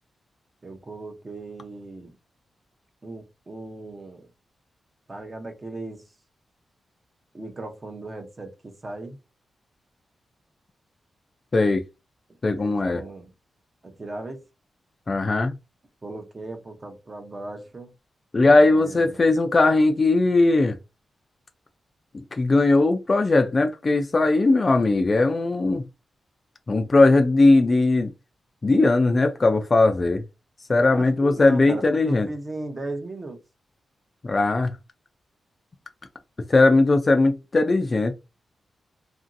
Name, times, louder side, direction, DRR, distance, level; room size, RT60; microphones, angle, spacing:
voice 1, 0.6-2.2 3.0-4.3 5.1-6.0 7.3-9.2 12.6-13.3 13.8-14.4 16.0-17.9 18.5-19.2 30.9-33.4, right 2 dB, 30° right, 0.6 m, -37 dB
voice 2, 12.4-13.0 15.1-15.5 18.3-20.8 22.4-25.9 26.7-28.1 28.6-30.2 30.7-32.3 34.2-34.7 36.5-38.1, left 2 dB, 30° left, 0.3 m, -19 dB
2.9 x 2.6 x 2.5 m
wide cardioid pair, 125°, 0 cm